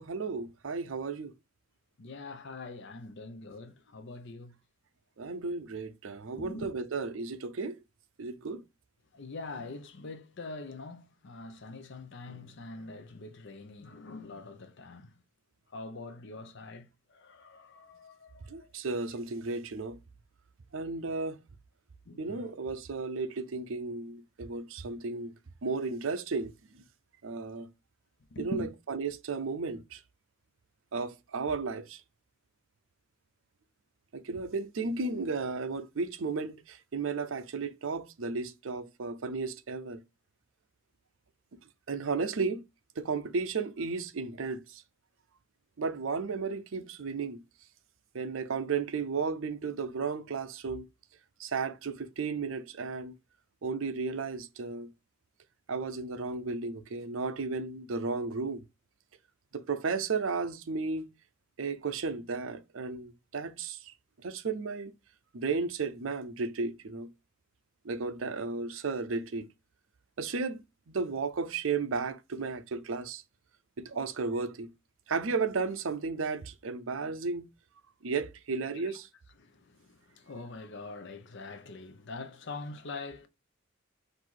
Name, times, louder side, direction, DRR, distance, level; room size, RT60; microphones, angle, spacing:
voice 1, 0.0-1.3 5.2-7.8 8.2-8.6 18.5-20.0 20.7-21.4 22.2-25.3 25.6-26.5 27.2-27.7 28.4-30.0 30.9-32.0 34.1-40.0 41.9-42.6 43.0-44.8 45.8-47.4 48.1-50.9 51.4-53.1 53.6-54.9 55.7-58.6 59.5-61.1 61.6-63.9 64.2-64.9 65.3-67.1 67.8-69.5 70.2-73.2 73.8-74.7 75.1-77.5 78.0-79.1, right 4 dB, 70° right, 0.6 m, -34 dB
voice 2, 2.0-4.5 6.4-6.7 9.1-15.1 15.7-18.7 22.1-22.5 28.3-28.7 78.8-78.9 79.4-83.3, left 3 dB, 60° left, 0.7 m, -44 dB
4.0 x 2.5 x 4.5 m
head